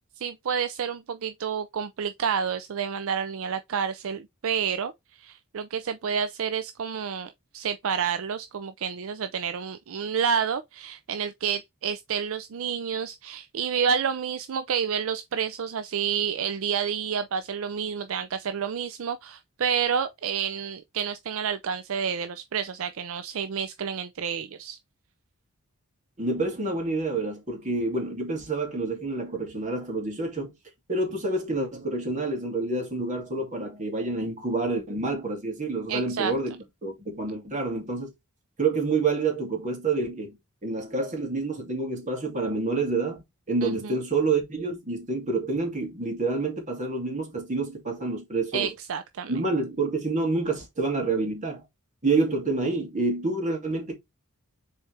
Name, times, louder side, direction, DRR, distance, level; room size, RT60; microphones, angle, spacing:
voice 1, 0.2-4.9 5.2-24.8 35.9-36.3 43.6-44.0 48.5-49.3, right 7 dB, 60° right, 0.4 m, -29 dB
voice 2, 26.2-30.5 30.9-36.5 36.8-38.1 38.6-40.4 40.6-48.7 49.3-51.6 52.0-54.0, right 3 dB, 35° right, 2.6 m, -28 dB
6.7 x 4.3 x 3.3 m
head